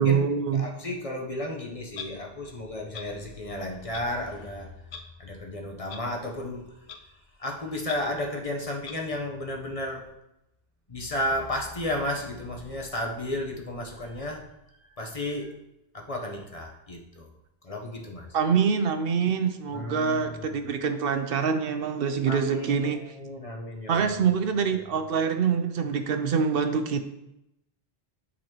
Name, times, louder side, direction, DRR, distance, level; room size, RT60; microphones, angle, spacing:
voice 1, 0.0-0.7 18.3-23.0 23.9-27.0, right 6 dB, 70° right, 8 dB, 0.8 m, -25 dB
voice 2, 0.5-4.7 5.2-6.7 7.4-10.0 10.9-14.5 14.8-15.5 15.9-17.3 17.6-18.3 19.7-20.5 22.3-24.1, left 1 dB, 35° left, 0 dB, 0.9 m, -33 dB
Clock, 1.9-2.1 2.9-3.1 3.9-4.0 4.9-5.0 5.9-6.0 6.9-7.0 7.9-8.0 8.9-9.0, left 6 dB, 80° left, 0.9 m, -39 dB
10.5 x 4.1 x 2.9 m, 0.85 s
omnidirectional pair, 1.0 m